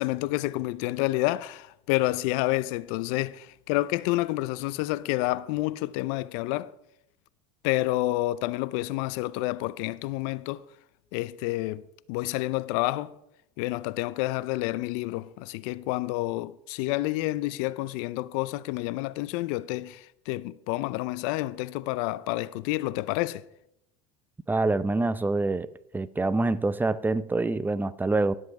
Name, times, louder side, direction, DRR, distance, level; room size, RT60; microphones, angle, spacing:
voice 1, 0.0-6.7 7.6-10.6 11.1-11.8 12.1-13.2 13.6-23.4, left 18 dB, 70° left, 0.6 m, -29 dB
voice 2, 24.5-25.7 25.9-28.3, right 2 dB, 10° right, 0.6 m, -26 dB
17.5 x 7.7 x 4.7 m
hypercardioid pair, 80°, 18 cm